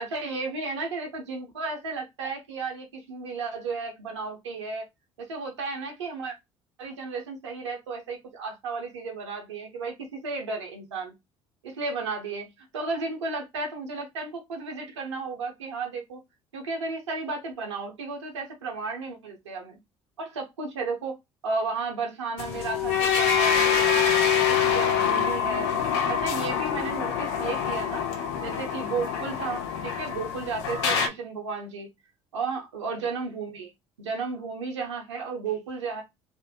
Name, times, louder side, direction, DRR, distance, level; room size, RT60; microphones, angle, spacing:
voice 1, 0.0-4.8 5.2-6.3 6.8-11.1 11.6-16.2 16.5-19.8 20.2-21.2 21.4-25.7 26.1-28.1 28.4-31.9 32.3-33.7 34.0-36.0, right 4 dB, 85° right, 0.7 m, -33 dB
sound 1, 22.4-31.1, left 7 dB, 70° left, 0.4 m, -25 dB
2.4 x 2.1 x 2.6 m
figure-of-eight pair, 55°, 15 cm